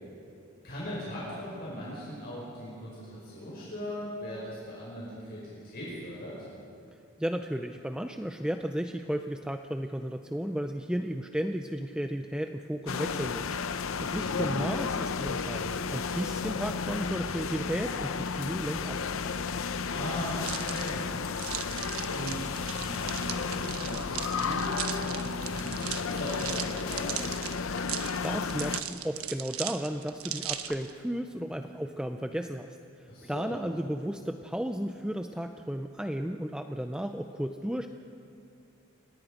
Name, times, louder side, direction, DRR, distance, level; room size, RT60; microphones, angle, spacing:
voice 1, 0.6-6.3 14.2-14.6 19.9-21.2 22.1-27.2 33.1-33.6, equal, 45° left, -6 dB, 5.4 m, -39 dB
voice 2, 7.2-19.0 28.2-37.9, equal, 5° right, 6 dB, 0.5 m, -34 dB
sound 1, 12.9-28.8, left 5 dB, 70° left, 0.7 m, -33 dB
sound 2, 20.4-30.9, right 10 dB, 90° right, 1.2 m, -38 dB
29.0 x 18.0 x 5.1 m, 2.6 s
head